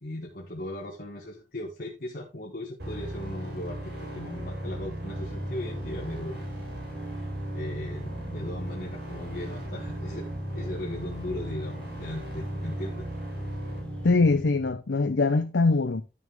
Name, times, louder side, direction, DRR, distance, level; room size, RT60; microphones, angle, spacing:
voice 1, 0.0-6.5 7.5-13.1, left 1 dB, 55° left, 1.7 m, -38 dB
sound 1, 2.8-14.8, right 1 dB, 65° right, 6.8 m, -36 dB
sound 2, 5.1-14.1, left 1 dB, 5° left, 1.5 m, -48 dB
voice 2, 14.0-16.0, left 3 dB, 85° left, 0.7 m, -22 dB
10.5 x 6.4 x 3.6 m
head